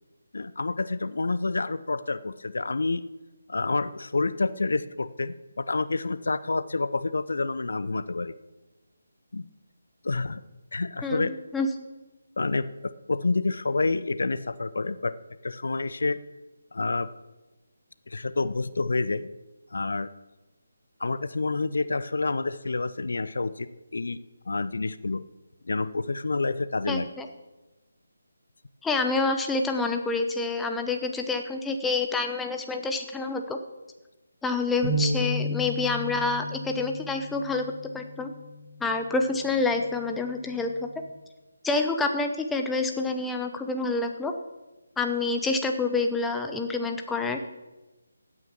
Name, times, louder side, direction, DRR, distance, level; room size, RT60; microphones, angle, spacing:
voice 1, 0.3-3.0 3.5-8.3 9.3-9.5 10.0-10.4 10.7-11.3 12.4-15.1 15.4-16.2 16.7-17.1 18.1-19.3 19.7-20.1 21.0-24.2 24.5-25.2 25.7-27.1, left 3 dB, 60° left, 15 dB, 0.6 m, -28 dB
voice 2, 11.0-11.7 26.9-27.3 28.8-33.6 34.4-37.6 37.9-38.3 38.8-40.7 41.6-44.3 45.0-47.4, left 3 dB, 5° left, 5 dB, 0.9 m, -27 dB
sound 1, 34.8-41.1, equal, 35° right, 5.6 m, -34 dB
16.0 x 8.9 x 5.9 m, 1.1 s
figure-of-eight pair, 150°, 0 cm